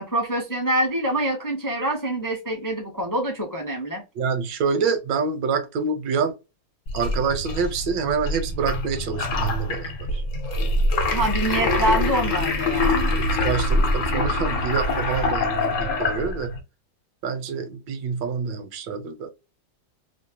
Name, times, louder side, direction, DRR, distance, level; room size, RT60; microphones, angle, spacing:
voice 1, 0.0-4.0 11.1-13.1, right 1 dB, 25° left, 0.4 m, -25 dB
voice 2, 4.2-6.4 6.9-10.2 13.2-16.5 17.2-19.3, right 5 dB, 80° right, 1.4 m, -27 dB
sound 1, 6.9-16.6, left 2 dB, 60° left, 0.8 m, -24 dB
3.3 x 2.0 x 2.6 m
omnidirectional pair, 2.0 m